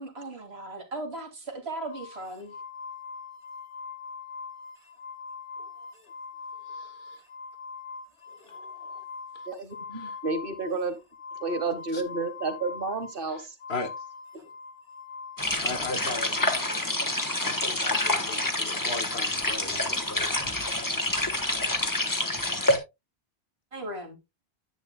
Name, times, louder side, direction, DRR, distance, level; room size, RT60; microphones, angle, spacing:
voice 1, 0.0-2.6 23.7-24.2, right 2 dB, 85° right, 2.4 m, -37 dB
sound 1, 1.9-16.8, left 5 dB, 35° left, 2.3 m, -42 dB
voice 2, 6.7-7.2 8.3-9.0 9.9-10.1 11.9-12.0 13.7-13.9 15.6-16.3 17.4-20.5 21.5-22.1, left 3 dB, 85° left, 1.7 m, -38 dB
voice 3, 9.5-11.0 11.4-13.5, right 3 dB, 60° right, 1.6 m, -31 dB
sound 2, 15.4-22.8, left 1 dB, 20° left, 1.3 m, -27 dB
9.8 x 9.3 x 2.2 m
omnidirectional pair, 1.0 m